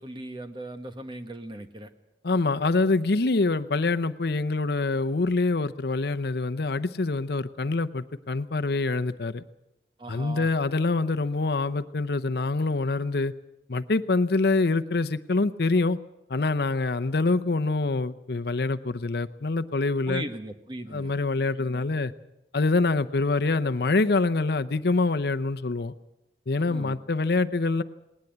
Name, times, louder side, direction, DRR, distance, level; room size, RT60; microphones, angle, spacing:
voice 1, 0.0-1.9 10.0-10.5 20.1-21.1 26.7-27.0, right 1 dB, 25° right, 7 dB, 1.4 m, -38 dB
voice 2, 2.2-9.4 10.1-13.3 13.7-16.0 16.3-20.2 20.9-22.1 22.5-25.9 26.5-27.8, left 3 dB, 60° left, 11 dB, 0.7 m, -25 dB
19.5 x 19.5 x 8.0 m, 0.91 s
head